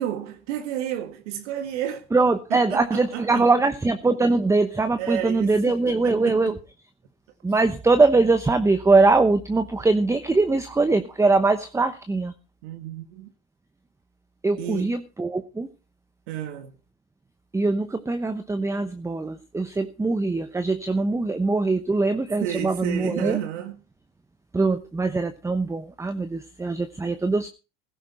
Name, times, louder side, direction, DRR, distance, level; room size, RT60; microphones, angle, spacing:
voice 1, 0.0-2.1 2.5-3.5 5.0-6.4 12.6-13.3 14.6-14.9 16.3-16.7 22.4-23.8, right 11 dB, 80° right, 1.8 m, -31 dB
voice 2, 2.1-6.6 7.4-12.3 14.4-15.7 17.5-23.4 24.5-27.5, right 3 dB, 10° right, 0.9 m, -22 dB
15.5 x 13.0 x 4.3 m
supercardioid pair, 110°, 35 cm